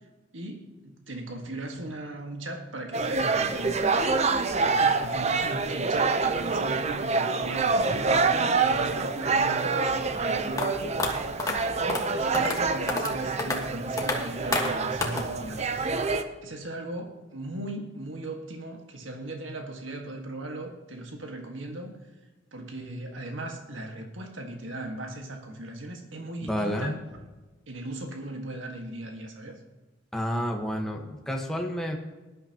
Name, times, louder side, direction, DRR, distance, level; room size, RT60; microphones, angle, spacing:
voice 1, 0.3-11.4 11.8-15.9 16.1-22.0 22.5-27.0 27.7-29.6, right 1 dB, 85° right, 3 dB, 1.7 m, -38 dB
sound 1, 2.9-16.2, right 4 dB, 35° right, 0.7 m, -26 dB
sound 2, 10.6-10.7 11.0-11.1 11.4-11.5 11.9-12.0 12.3-12.6 12.9-13.1 13.4-13.6 14.0-14.2 14.5-14.7 15.0-15.2, left 3 dB, 20° left, 1.6 m, -27 dB
voice 2, 26.4-26.9 30.1-32.0, equal, 5° left, 1 dB, 1.3 m, -30 dB
18.5 x 11.0 x 3.0 m, 1.2 s
head